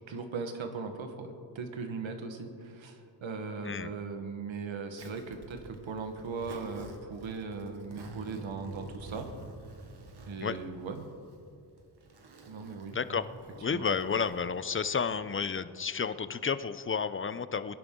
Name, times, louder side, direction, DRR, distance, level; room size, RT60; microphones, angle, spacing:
voice 1, 0.1-9.3 10.3-11.1 12.5-13.0 13.7-13.8, right 4 dB, 90° right, 6 dB, 1.4 m, -39 dB
Zipper (clothing), 5.0-15.0, right 2 dB, 60° right, 1.5 m, -49 dB
voice 2, 12.9-13.3 13.5-17.8, left 6 dB, 30° left, 14 dB, 0.6 m, -31 dB
22.5 x 11.0 x 3.8 m, 2.4 s
cardioid pair, 70°, 45 cm